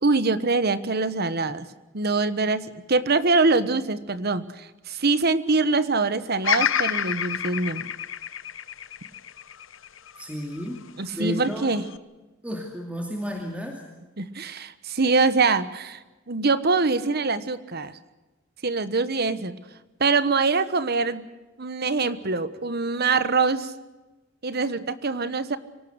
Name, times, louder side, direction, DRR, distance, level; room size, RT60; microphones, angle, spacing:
voice 1, 0.0-1.7 1.9-7.9 11.0-11.8 14.2-18.0 18.6-19.5 20.0-21.2 21.6-23.7 24.4-25.6, right 3 dB, 55° right, 14 dB, 1.3 m, -24 dB
Bird vocalization bird call bird song, 6.4-10.7 11.2-12.0, left 9 dB, 75° left, 1.0 m, -28 dB
voice 2, 10.2-10.9 11.1-11.7 12.4-13.8, equal, 5° right, 1 dB, 2.5 m, -32 dB
25.0 x 18.0 x 8.1 m, 1.1 s
head